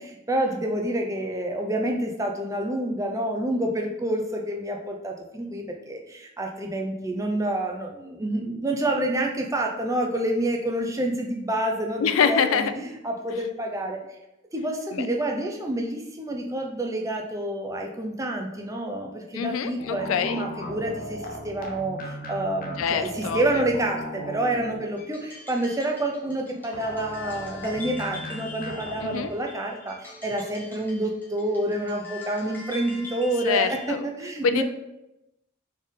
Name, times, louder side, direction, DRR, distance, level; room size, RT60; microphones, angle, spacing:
voice 1, 0.0-14.0 14.5-34.6, right 1 dB, 15° right, 2 dB, 0.5 m, -28 dB
voice 2, 12.0-12.7 14.9-15.0 19.3-20.4 22.8-23.6 29.0-29.3 33.4-34.1 34.4-34.6, left 6 dB, 80° left, 10 dB, 0.4 m, -25 dB
sound 1, 19.8-25.1 26.7-29.3, left 1 dB, 45° left, 0.7 m, -37 dB
sound 2, 25.0-34.0, left 3 dB, 10° left, 0.8 m, -43 dB
4.3 x 3.3 x 3.6 m, 0.90 s
head